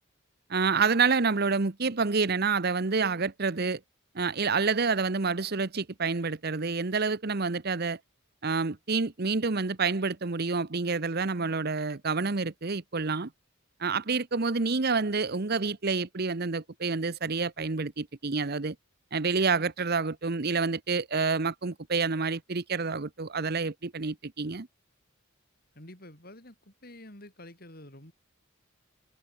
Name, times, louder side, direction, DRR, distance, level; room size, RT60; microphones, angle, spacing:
voice 1, 0.5-3.8 4.1-8.0 8.4-13.3 13.8-18.7 19.1-24.7, right 4 dB, 50° right, 1.0 m, -28 dB
voice 2, 25.7-28.1, left 1 dB, 50° left, 7.7 m, -48 dB
head